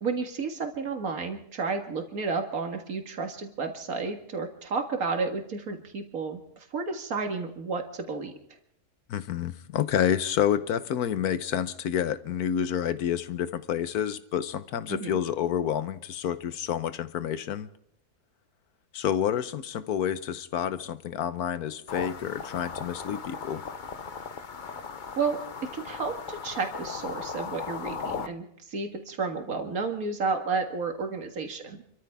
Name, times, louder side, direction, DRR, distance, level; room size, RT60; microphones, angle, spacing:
voice 1, 0.0-8.3 14.9-15.2 25.2-25.4 25.7-31.8, right 4 dB, 70° right, 2.2 m, -32 dB
voice 2, 9.1-17.7 18.9-23.6, left 9 dB, 85° left, 1.4 m, -29 dB
sound 1, 21.9-28.3, left 5 dB, 40° left, 0.8 m, -37 dB
28.5 x 14.0 x 3.6 m
omnidirectional pair, 1.6 m